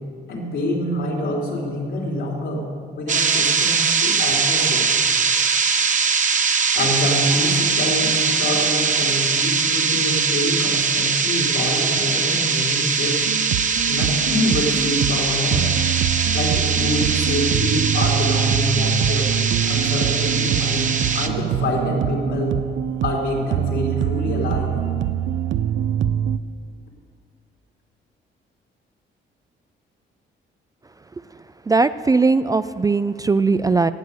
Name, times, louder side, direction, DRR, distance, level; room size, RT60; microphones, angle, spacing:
voice 1, 0.3-2.6 3.0-4.9 6.8-13.2 13.9-15.6 16.3-19.3 19.7-22.6 23.0-24.7, left 1 dB, 75° left, -1 dB, 3.4 m, -26 dB
sound 1, 3.1-21.3, right 5 dB, 40° right, 0.9 m, -21 dB
sound 2, 13.2-26.4, right 10 dB, 75° right, 0.5 m, -24 dB
voice 2, 31.3-33.9, right 4 dB, 20° right, 13 dB, 0.3 m, -19 dB
18.0 x 8.0 x 6.8 m, 2.2 s
cardioid pair, 90°, 20 cm